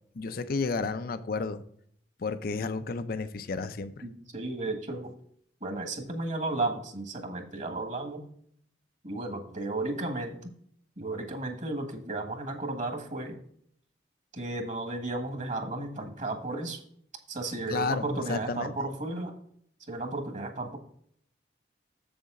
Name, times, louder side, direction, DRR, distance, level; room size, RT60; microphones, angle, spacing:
voice 1, 0.2-1.6 2.2-4.0 17.7-18.7, left 4 dB, 55° left, 11 dB, 0.5 m, -32 dB
voice 2, 4.0-5.1 5.6-8.3 9.0-10.4 11.0-13.4 14.3-16.8 17.3-19.4 19.9-20.8, right 2 dB, 45° right, 5 dB, 1.5 m, -34 dB
7.4 x 7.0 x 3.7 m, 0.64 s
head